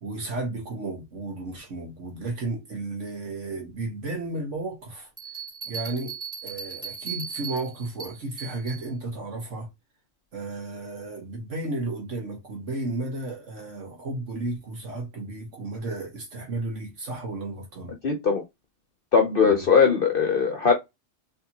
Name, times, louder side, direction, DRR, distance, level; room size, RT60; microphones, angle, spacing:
voice 1, 0.0-5.1 5.7-6.2 6.4-9.7 10.3-17.9 19.4-19.7, right 2 dB, 65° right, 1.6 m, -33 dB
Bell, 5.2-8.8, right 7 dB, 25° right, 2.6 m, -37 dB
voice 2, 18.0-18.4 19.1-20.7, left 6 dB, 50° left, 0.9 m, -20 dB
4.1 x 3.5 x 2.9 m
omnidirectional pair, 1.3 m